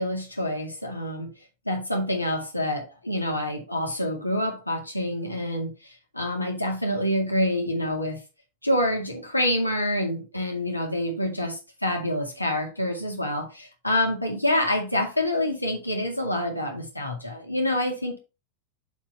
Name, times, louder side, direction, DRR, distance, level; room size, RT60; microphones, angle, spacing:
voice 1, 0.0-1.3 1.7-8.2 8.6-18.2, left 1 dB, 85° left, 2.1 m, -27 dB
7.0 x 4.4 x 4.3 m
figure-of-eight pair, 90°, 0 cm